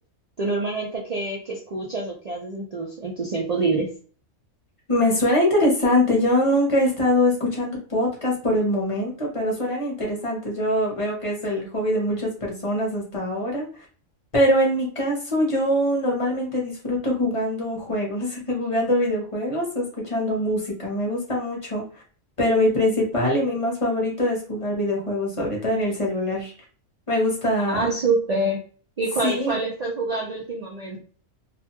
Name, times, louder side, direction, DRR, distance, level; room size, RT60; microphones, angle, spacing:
voice 1, 0.4-3.9 27.7-28.6 29.0-31.0, right 3 dB, 80° right, -2 dB, 0.3 m, -26 dB
voice 2, 4.9-13.7 14.3-21.8 22.4-26.5 27.1-27.8 29.2-29.5, left 1 dB, 25° left, -2 dB, 0.8 m, -23 dB
2.5 x 2.2 x 2.8 m, 0.41 s
omnidirectional pair, 1.5 m